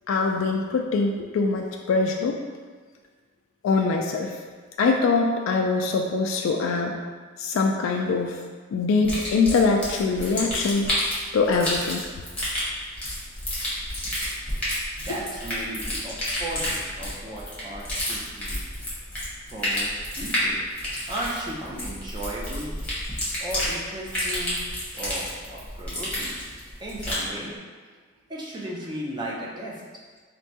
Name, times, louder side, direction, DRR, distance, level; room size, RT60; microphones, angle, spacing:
voice 1, 0.1-2.4 3.6-4.4 4.8-7.0 7.4-8.4 8.7-10.9 11.3-12.1, left 4 dB, 85° left, 2 dB, 0.3 m, -23 dB
sound 1, 9.0-27.3, left 1 dB, 5° left, 0.9 m, -30 dB
voice 2, 15.1-18.6 19.5-20.6 21.1-22.7 23.4-24.6 24.9-26.4 26.8-27.6 28.3-29.8, right 1 dB, 20° right, -5 dB, 0.5 m, -35 dB
4.3 x 2.2 x 2.7 m, 1.5 s
head